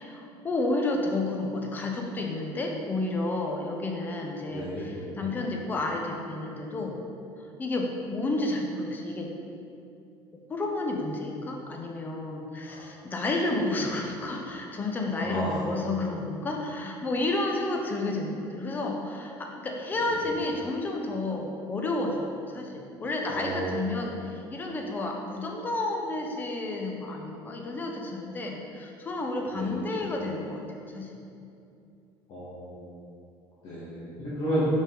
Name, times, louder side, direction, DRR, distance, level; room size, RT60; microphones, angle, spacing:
voice 1, 0.0-7.0 7.6-9.3 10.5-31.1, left 2 dB, 20° left, 1 dB, 0.6 m, -31 dB
voice 2, 4.5-5.5 12.7-12.8 13.6-13.7 15.2-15.6 23.3-23.7 29.5-29.7 32.3-32.8 33.6-34.7, equal, 60° left, -11 dB, 1.4 m, -33 dB
5.2 x 5.0 x 3.8 m, 2.6 s
cardioid pair, 155°, 9 cm